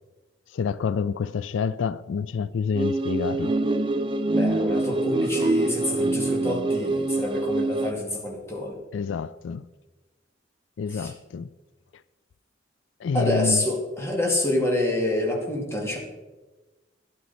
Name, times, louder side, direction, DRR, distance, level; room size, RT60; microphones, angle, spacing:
voice 1, 0.5-3.5 8.9-9.6 10.8-11.5 13.0-13.7, left 6 dB, 90° left, 0.4 m, -28 dB
sound 1, 2.7-7.9, right 2 dB, 25° right, 0.4 m, -25 dB
voice 2, 4.3-8.8 10.9-11.1 13.1-16.0, left 1 dB, 15° left, 2.2 m, -27 dB
12.5 x 10.5 x 4.2 m
head